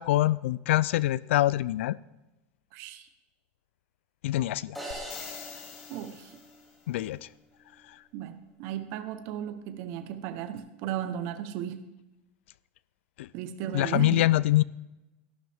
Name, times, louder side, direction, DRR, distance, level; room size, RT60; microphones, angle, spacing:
voice 1, 0.0-2.0 4.2-4.8 6.9-7.2 13.2-13.3 13.7-14.6, left 15 dB, 85° left, 20 dB, 0.4 m, -24 dB
voice 2, 2.7-3.1 5.9-6.4 8.1-11.8 13.3-14.3, right 10 dB, 45° right, 9 dB, 1.0 m, -35 dB
sound 1, 4.7-7.1, right 1 dB, ahead, 2.4 m, -43 dB
sound 2, 4.9-6.7 10.6-10.7, left 12 dB, 40° left, 0.9 m, -46 dB
18.0 x 10.5 x 3.6 m, 1.0 s
supercardioid pair, 165°, 6 cm